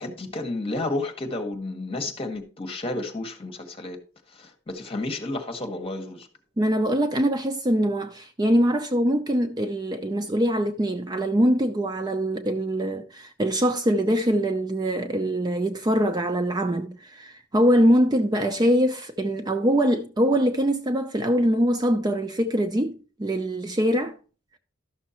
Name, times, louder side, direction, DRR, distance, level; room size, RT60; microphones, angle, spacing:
voice 1, 0.0-4.0 4.3-6.3, left 2 dB, 30° left, 1.4 m, -31 dB
voice 2, 6.6-24.2, equal, 20° right, 0.5 m, -23 dB
12.5 x 6.4 x 2.9 m
head